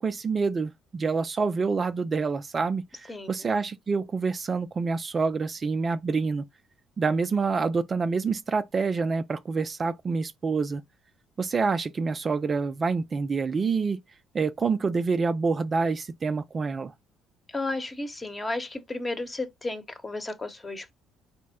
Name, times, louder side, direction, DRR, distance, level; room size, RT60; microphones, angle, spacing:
voice 1, 0.0-6.4 7.0-10.8 11.4-14.0 14.3-16.9, right 4 dB, 35° right, 0.3 m, -27 dB
voice 2, 17.5-20.9, left 2 dB, 20° left, 0.9 m, -33 dB
4.3 x 2.0 x 3.5 m
hypercardioid pair, 50°, 0 cm